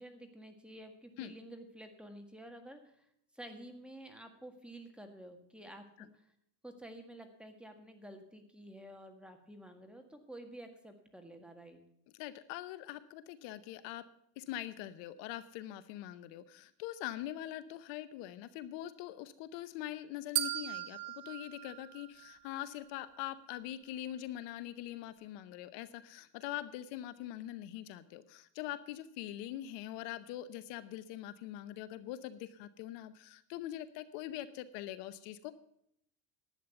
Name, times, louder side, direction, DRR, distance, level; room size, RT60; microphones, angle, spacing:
voice 1, 0.0-3.1 3.3-6.2 6.6-11.8, right 1 dB, ahead, 4 dB, 1.7 m, -51 dB
voice 2, 12.2-14.0 14.4-35.5, left 13 dB, 65° left, 14 dB, 0.9 m, -43 dB
sound 1, 20.4-22.6, right 16 dB, 80° right, 1.1 m, -38 dB
11.5 x 8.5 x 6.8 m, 0.72 s
supercardioid pair, 125°, 45 cm